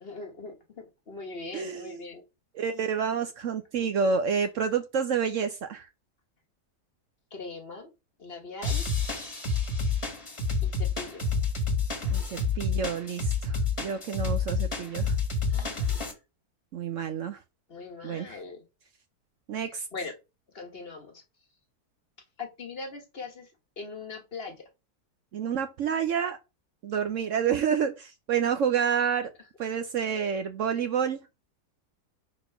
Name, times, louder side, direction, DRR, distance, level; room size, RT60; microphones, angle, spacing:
voice 1, 0.0-2.2 7.3-7.9 8.2-8.8 10.6-11.2 15.5-16.1 17.7-18.6 19.9-20.1 20.5-21.1 22.4-23.5 23.8-24.6, left 3 dB, 40° left, 1.3 m, -40 dB
voice 2, 1.5-2.0 2.5-5.9 12.1-15.2 16.7-17.4 18.0-18.4 19.5-19.9 25.3-26.4 26.8-29.3 29.6-31.2, right 7 dB, 65° right, 0.9 m, -29 dB
sound 1, 8.6-16.1, left 4 dB, 20° left, 1.4 m, -29 dB
4.4 x 4.3 x 5.5 m
omnidirectional pair, 1.6 m